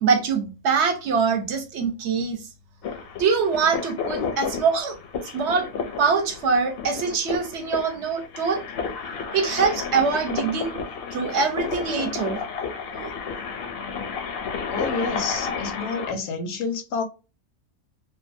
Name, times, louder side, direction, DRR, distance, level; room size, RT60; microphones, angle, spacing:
voice 1, 0.0-2.4 3.2-5.0 5.3-5.7 6.0-8.6 9.3-10.8 11.1-12.4 12.9-13.1, right 5 dB, 65° right, 0.9 m, -23 dB
sound 1, 2.8-16.1, left 5 dB, 65° left, 0.6 m, -32 dB
voice 2, 14.7-17.0, left 4 dB, 85° left, 1.0 m, -29 dB
2.7 x 2.2 x 2.5 m
omnidirectional pair, 1.3 m